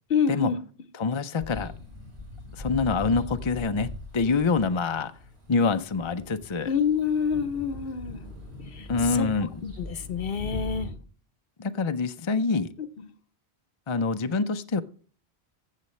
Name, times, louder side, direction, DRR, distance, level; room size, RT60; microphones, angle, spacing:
voice 1, 0.1-0.6 6.7-8.2 8.7-9.3 9.6-10.9 12.8-13.1, left 7 dB, 60° left, 14 dB, 1.0 m, -27 dB
voice 2, 1.0-1.7 2.6-5.1 5.5-6.7 8.9-9.5 11.6-12.7 13.9-14.8, left 4 dB, 35° left, 10 dB, 0.5 m, -26 dB
sound 1, 1.4-10.9, left 2 dB, 75° right, 4.4 m, -40 dB
15.0 x 7.4 x 3.2 m, 0.42 s
omnidirectional pair, 1.1 m